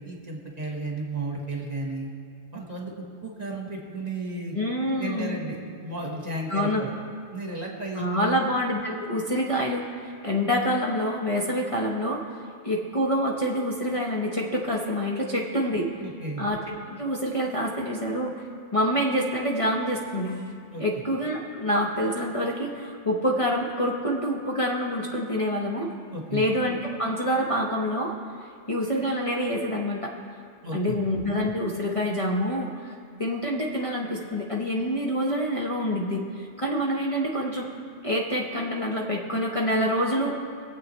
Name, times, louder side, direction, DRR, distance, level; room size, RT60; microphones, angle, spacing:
voice 1, 0.0-2.1 2.5-4.6 5.0-5.6 5.8-6.9 7.3-8.5 16.0-16.5 20.7-20.8 26.1-26.5 30.6-31.0, right 2 dB, 35° right, -1 dB, 1.6 m, -33 dB
voice 2, 4.5-5.4 6.5-6.8 7.9-12.4 12.6-15.9 16.4-18.3 18.7-20.5 20.8-25.9 26.3-28.1 28.7-30.1 30.7-32.9 33.2-37.7 38.0-40.3, equal, 30° left, -2 dB, 1.0 m, -26 dB
23.5 x 8.0 x 3.2 m, 2.2 s
omnidirectional pair, 1.2 m